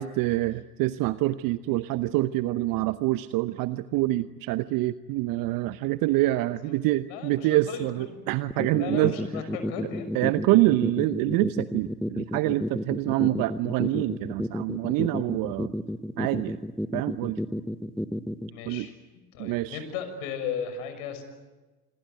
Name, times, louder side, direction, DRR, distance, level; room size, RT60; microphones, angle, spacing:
voice 1, 0.0-9.1 10.1-15.7 16.2-16.6 16.9-17.4 18.6-18.9 19.4-19.8, right 17 dB, 45° right, 14 dB, 0.9 m, -26 dB
voice 2, 6.6-8.2 8.5-10.1 18.5-18.9 19.3-21.2, left 7 dB, 60° left, 8 dB, 6.2 m, -36 dB
sound 1, 8.5-18.5, equal, ahead, 1.0 m, -30 dB
27.0 x 22.0 x 9.4 m, 1.2 s
figure-of-eight pair, 75°, 46 cm